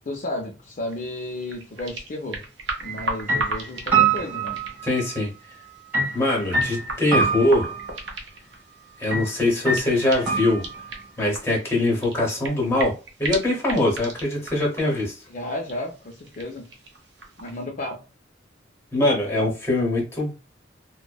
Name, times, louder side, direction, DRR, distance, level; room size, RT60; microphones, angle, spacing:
voice 1, 0.1-2.5 2.8-4.6 15.3-16.7 17.4-18.0, left 1 dB, 45° left, 0 dB, 0.4 m, -33 dB
sound 1, 0.9-17.6, right 2 dB, 65° right, 0.6 m, -37 dB
sound 2, 2.8-3.0 3.3-5.2 5.9-8.0 9.1-9.3 9.7-11.0, right 4 dB, 10° right, 1.3 m, -25 dB
voice 2, 4.8-5.3 6.1-7.7 9.0-10.6 11.2-12.9 13.2-15.1 18.9-20.3, left 1 dB, 15° left, -2 dB, 0.8 m, -22 dB
2.6 x 2.1 x 2.3 m, 0.32 s
head